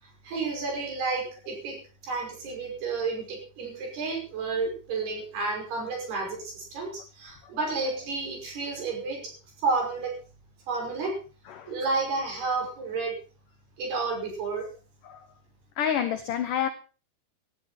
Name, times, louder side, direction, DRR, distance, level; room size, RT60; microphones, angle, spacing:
voice 1, 0.0-9.3 9.6-10.1 10.7-11.2 11.7-13.2 13.8-14.7, right 3 dB, 60° right, 2 dB, 7.6 m, -31 dB
voice 2, 15.8-16.7, left 9 dB, 85° left, 10 dB, 1.9 m, -28 dB
18.0 x 13.5 x 4.2 m, 0.36 s
omnidirectional pair, 5.2 m